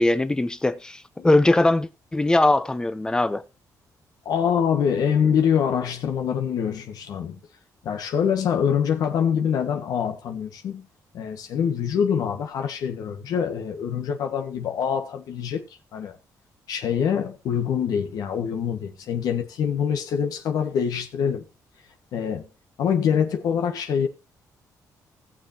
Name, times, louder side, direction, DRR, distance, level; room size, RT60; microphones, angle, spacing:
voice 1, 0.0-3.4, left 2 dB, 10° left, 0.8 m, -21 dB
voice 2, 4.2-7.4 7.8-10.9 11.1-15.6 15.9-16.2 16.7-21.4 22.1-22.5 22.8-24.1, left 7 dB, 75° left, 1.7 m, -25 dB
19.0 x 7.2 x 3.0 m
cardioid pair, 145°, 7 cm